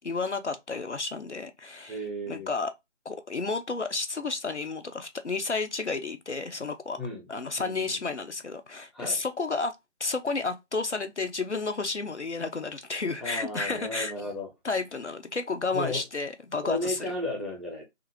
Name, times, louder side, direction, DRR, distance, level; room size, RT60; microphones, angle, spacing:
voice 1, 0.0-2.0 2.3-2.7 3.1-7.0 7.3-9.8 10.0-14.1 14.6-17.0, left 3 dB, 65° left, 0.5 m, -31 dB
voice 2, 1.9-2.5 7.0-7.3 7.6-8.0 8.9-9.2 13.2-14.5 15.7-16.0 16.6-17.8, left 1 dB, ahead, 0.6 m, -34 dB
2.8 x 2.4 x 2.8 m
figure-of-eight pair, 180°, 37 cm